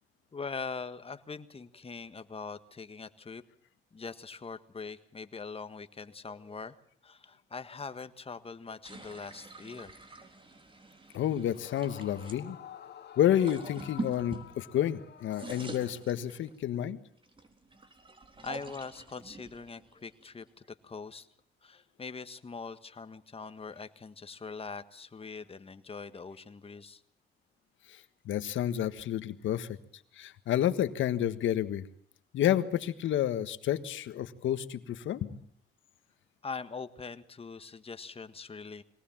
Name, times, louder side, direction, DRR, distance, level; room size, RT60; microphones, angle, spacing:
voice 1, 0.3-3.4 3.9-6.8 7.0-9.9 18.4-21.3 21.6-27.0 36.4-38.8, left 4 dB, 30° left, 11 dB, 1.6 m, -42 dB
sound 1, 8.8-12.4 13.2-14.9 15.2-16.7 17.2-20.6, right 2 dB, 25° right, 3.9 m, -45 dB
voice 2, 11.1-12.6 13.2-17.0 28.2-29.7 30.2-31.8 32.3-35.3, left 11 dB, 75° left, 11 dB, 1.6 m, -30 dB
Yell / Screaming, 11.5-16.4, left 9 dB, 55° left, 2.3 m, -50 dB
23.0 x 18.5 x 7.4 m, 0.65 s
cardioid pair, 90°, 20 cm